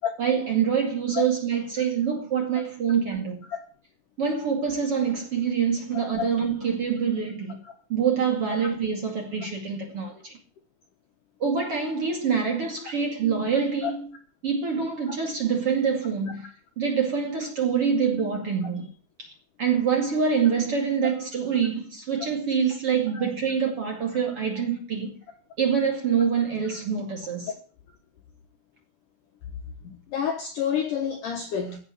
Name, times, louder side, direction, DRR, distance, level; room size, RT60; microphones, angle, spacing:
voice 1, 0.2-3.4 4.2-7.6 7.9-10.4 11.4-14.1 14.4-16.4 16.8-18.9 19.2-19.3 19.6-25.1 25.6-27.5, right 6 dB, 40° right, 2.5 m, -25 dB
voice 2, 5.9-6.3 23.2-23.3 29.8-31.8, left 8 dB, 65° left, 2.2 m, -29 dB
16.0 x 6.8 x 8.5 m
omnidirectional pair, 5.3 m